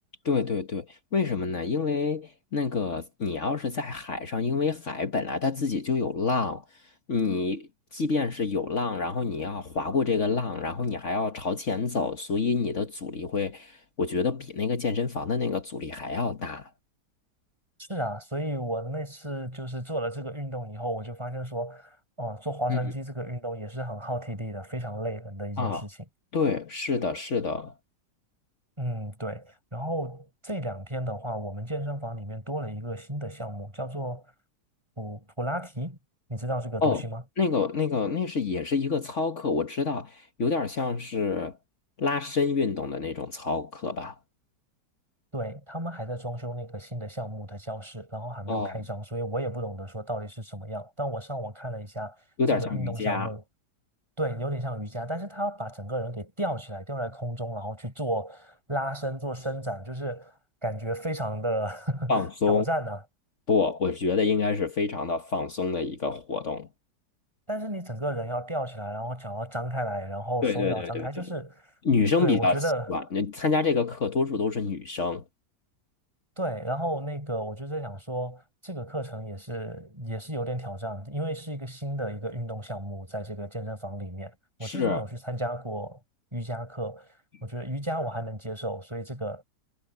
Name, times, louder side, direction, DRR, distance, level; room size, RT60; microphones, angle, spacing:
voice 1, 0.2-6.6 7.1-16.7 22.7-22.8 25.6-25.8 26.3-27.7 36.8-37.0 37.4-41.6 42.0-44.2 48.5-48.8 52.4-53.3 62.1-62.6 63.5-66.7 70.4-71.1 71.8-72.6 72.9-75.2 84.6-85.0, left 4 dB, 45° left, 1.5 m, -27 dB
voice 2, 17.9-26.0 28.8-34.2 35.0-36.0 36.3-37.2 45.3-52.2 52.5-53.4 54.2-60.4 60.6-62.1 62.5-63.0 67.5-71.7 72.2-72.9 76.4-84.3 84.6-86.0 86.3-87.1 87.4-89.4, right 1 dB, 15° right, 7.1 m, -33 dB
omnidirectional pair, 1.8 m